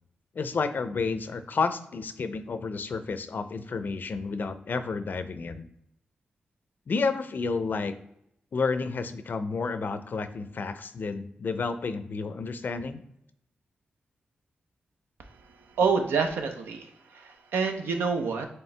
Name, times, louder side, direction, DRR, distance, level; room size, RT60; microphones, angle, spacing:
voice 1, 0.4-5.6 6.9-7.9 8.5-13.0, left 4 dB, 60° left, 11 dB, 0.4 m, -30 dB
voice 2, 15.8-16.9 17.1-18.5, right 5 dB, 90° right, 5 dB, 0.6 m, -27 dB
4.5 x 3.1 x 3.3 m, 0.78 s
cardioid pair, 55°, 4 cm